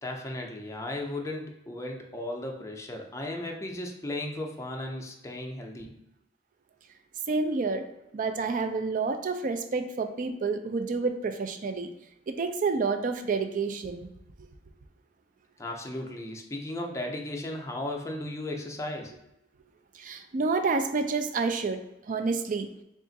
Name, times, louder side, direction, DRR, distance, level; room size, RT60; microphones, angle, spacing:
voice 1, 0.0-6.0 15.6-19.1, left 1 dB, 15° left, 1 dB, 0.5 m, -35 dB
voice 2, 7.3-7.9 8.1-11.9 12.3-14.1 20.0-21.8 22.1-22.7, right 4 dB, 50° right, 8 dB, 0.4 m, -29 dB
3.5 x 2.4 x 3.9 m, 0.86 s
head